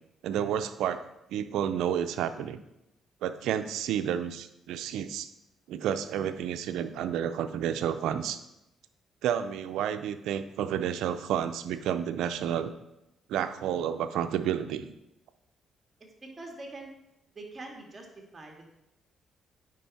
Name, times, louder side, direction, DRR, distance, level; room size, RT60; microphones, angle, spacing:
voice 1, 0.2-1.0 1.3-2.6 3.2-5.3 5.7-8.4 9.2-12.7 13.3-14.9, right 9 dB, 85° right, 10 dB, 0.5 m, -30 dB
voice 2, 16.2-16.9 17.3-18.7, right 2 dB, 25° right, 1 dB, 1.9 m, -44 dB
9.2 x 5.3 x 4.2 m, 0.86 s
cardioid pair, 90°, 0 cm